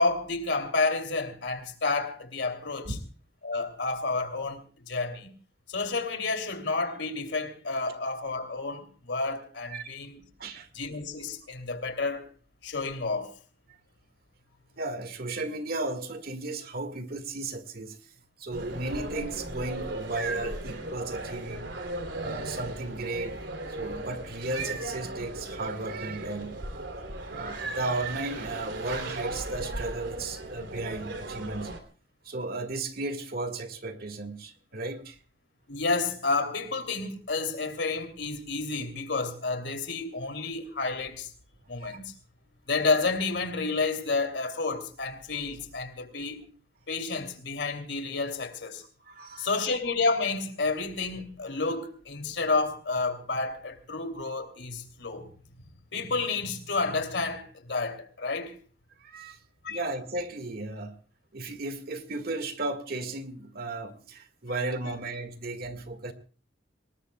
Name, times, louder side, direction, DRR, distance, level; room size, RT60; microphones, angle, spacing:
voice 1, 0.0-2.9 3.4-5.3 5.7-10.2 10.7-12.3 12.6-13.3 35.7-41.3 41.7-42.0 42.7-46.4 46.9-48.8 49.4-55.3 55.9-58.5 59.6-59.8, left 3 dB, 70° left, 2.9 m, -30 dB
voice 2, 14.8-18.0 18.4-21.7 22.2-23.4 23.7-26.6 27.3-31.7 32.2-35.2 41.8-42.0 49.0-49.6 58.9-59.4 59.7-61.0 61.3-66.1, right 2 dB, 55° right, 1.8 m, -35 dB
sound 1, 18.5-31.8, right 2 dB, 85° right, 3.0 m, -37 dB
26.5 x 19.5 x 2.3 m
head